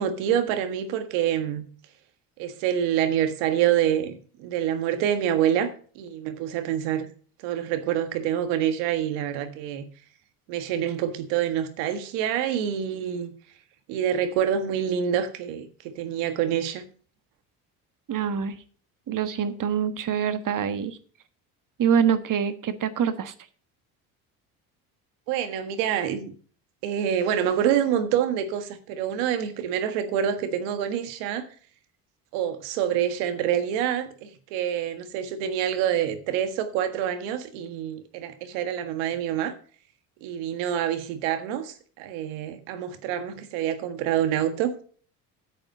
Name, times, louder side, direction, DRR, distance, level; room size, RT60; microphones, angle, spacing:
voice 1, 0.0-1.6 2.4-7.1 7.4-9.9 10.5-13.3 13.9-16.8 25.3-26.3 26.8-31.4 32.3-39.5 40.2-44.7, right 9 dB, 80° right, 1.6 m, -26 dB
voice 2, 18.1-18.6 19.1-21.0 21.8-23.3, right 8 dB, 45° right, 1.4 m, -25 dB
9.7 x 7.8 x 5.4 m
hypercardioid pair, 65°, 43 cm